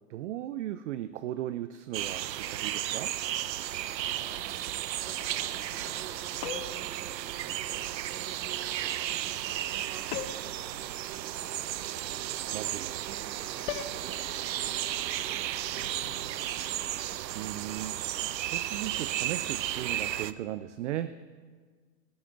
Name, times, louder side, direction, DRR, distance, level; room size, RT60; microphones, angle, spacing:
voice 1, 0.1-3.1 12.5-13.0 17.3-17.9 18.3-21.2, right 13 dB, 50° right, 13 dB, 0.5 m, -37 dB
sound 1, 1.9-20.3, right 12 dB, 85° right, 0.6 m, -34 dB
voice 2, 4.0-8.4 8.8-12.4 13.5-17.0, equal, 5° right, -3 dB, 2.9 m, -54 dB
sound 2, 6.4-6.9 10.1-10.6 13.7-14.0, left 10 dB, 40° left, 0.8 m, -36 dB
17.5 x 8.7 x 4.6 m, 1.5 s
hypercardioid pair, 135°, 50 cm